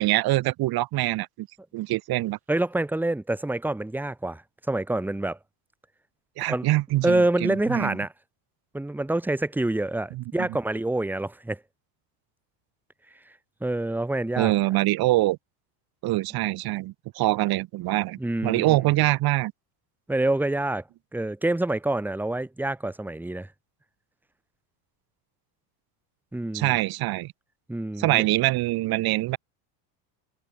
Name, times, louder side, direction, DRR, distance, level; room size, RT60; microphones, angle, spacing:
voice 1, 0.0-1.5 1.7-2.4 6.4-8.0 10.1-10.2 14.4-15.4 16.0-19.5 26.5-27.3 28.0-29.4, right 18 dB, 45° right, 6.3 m, -24 dB
voice 2, 2.5-4.4 4.7-5.4 6.5-6.7 7.0-8.1 8.7-11.6 13.6-14.5 18.2-18.8 20.1-20.8 21.1-23.5 26.3-26.8 27.7-28.2, right 2 dB, 5° right, 2.8 m, -26 dB
cardioid pair, 150°, 49 cm